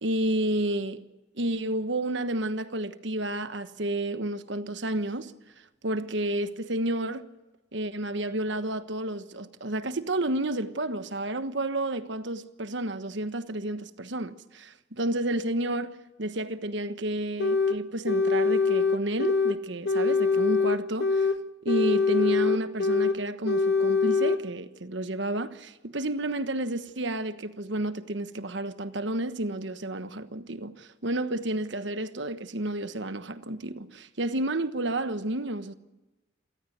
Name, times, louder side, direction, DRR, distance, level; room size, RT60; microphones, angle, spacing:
voice 1, 0.0-1.0 1.3-5.3 5.8-7.3 7.7-21.3 21.6-35.7, right 1 dB, 60° right, 1.3 m, -31 dB
sound 1, 17.4-17.8 18.1-19.6 19.8-21.4 21.7-23.2 23.4-24.4, left 4 dB, 55° left, 1.2 m, -24 dB
28.0 x 14.5 x 9.4 m
head